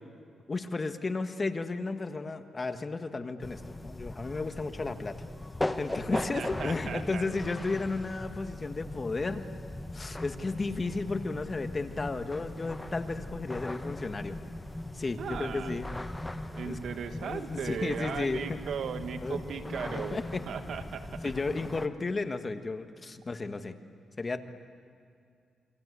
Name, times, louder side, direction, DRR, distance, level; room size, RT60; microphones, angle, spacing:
voice 1, 0.5-5.2 5.8-9.5 9.9-14.4 14.9-15.9 16.6-16.8 17.1-18.6 19.2-19.4 19.9-20.4 21.2-23.7 24.2-24.4, left 3 dB, 30° left, 8 dB, 1.5 m, -33 dB
sound 1, 3.4-21.9, left 1 dB, 15° left, 1.3 m, -39 dB
voice 2, 6.1-7.3 15.2-15.8 16.6-21.3, right 7 dB, 70° right, 8 dB, 1.7 m, -37 dB
28.0 x 24.5 x 8.3 m, 2.3 s
cardioid pair, 80°, 0 cm